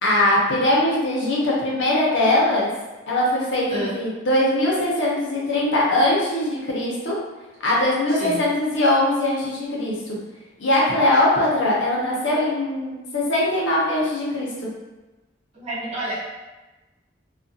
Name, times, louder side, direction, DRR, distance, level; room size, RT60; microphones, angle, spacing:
voice 1, 0.0-2.7 3.1-7.2 7.6-10.2 10.6-14.5, left 1 dB, 65° left, -5 dB, 0.6 m, -21 dB
voice 2, 8.1-8.4 15.5-16.2, right 1 dB, 35° right, -9 dB, 0.8 m, -29 dB
2.3 x 2.2 x 2.6 m, 1.1 s
head